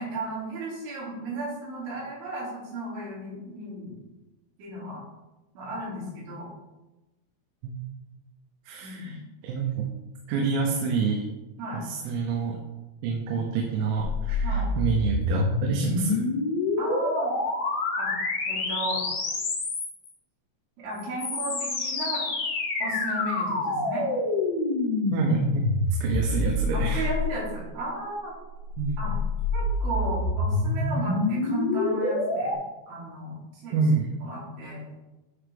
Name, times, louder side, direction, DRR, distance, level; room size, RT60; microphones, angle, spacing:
voice 1, 0.0-3.9 4.6-5.0 5.6-6.5 8.8-9.1 11.6-11.9 14.4-14.7 16.8-17.3 18.0-18.1 18.5-19.0 20.8-22.3 22.8-24.0 26.7-28.3 29.0-29.1 29.5-32.6 32.9-33.3 33.6-33.8 34.2-34.8, right 1 dB, 70° right, -8 dB, 5.2 m, -34 dB
voice 2, 8.7-9.2 9.4-9.8 10.3-11.2 11.7-12.6 13.0-16.2 25.1-25.7 26.0-27.1 28.8-29.2 33.7-34.1, right 5 dB, 85° right, 0 dB, 3.4 m, -27 dB
sound 1, 14.0-20.1 21.0-27.6 28.6-32.6, left 2 dB, 55° left, 2.2 m, -27 dB
10.5 x 4.5 x 3.5 m, 1.1 s
omnidirectional pair, 5.9 m